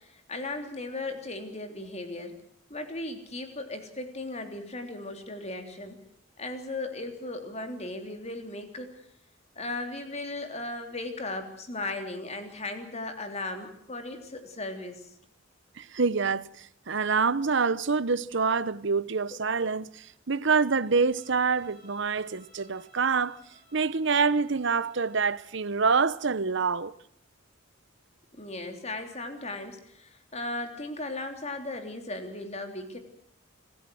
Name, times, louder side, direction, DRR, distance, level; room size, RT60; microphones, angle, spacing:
voice 1, 0.0-2.4 2.7-6.0 6.4-9.0 9.6-15.1 19.3-19.4 28.4-33.0, left 2 dB, 35° left, 3.5 m, -37 dB
voice 2, 15.8-23.4 23.7-26.9, right 5 dB, 65° right, 0.9 m, -26 dB
Bowed string instrument, 20.7-25.6, left 1 dB, 30° right, 5.4 m, -60 dB
26.5 x 15.0 x 7.8 m
head